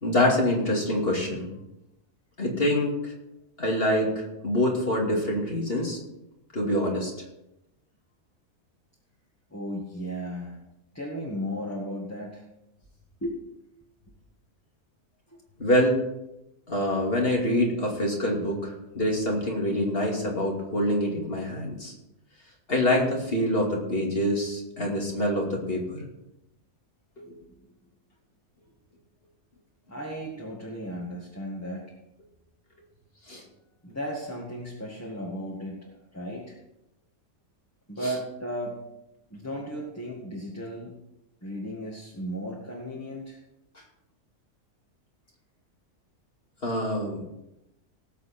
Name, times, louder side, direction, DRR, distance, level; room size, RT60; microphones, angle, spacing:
voice 1, 0.0-1.5 2.4-3.1 3.6-6.0 6.5-7.1 15.6-16.0 16.7-21.9 22.7-26.0 27.2-27.3 33.3-33.4 38.0-38.1 46.6-47.2, left 1 dB, 40° left, -1 dB, 2.8 m, -25 dB
voice 2, 9.5-10.6 10.9-12.4 13.2-13.4 15.3-15.4 27.2-27.7 29.9-31.8 33.8-35.8 36.1-36.6 37.9-38.8 39.3-40.9 41.4-43.4, equal, 10° left, -4 dB, 1.9 m, -35 dB
18.5 x 7.6 x 4.4 m, 0.89 s
omnidirectional pair, 1.5 m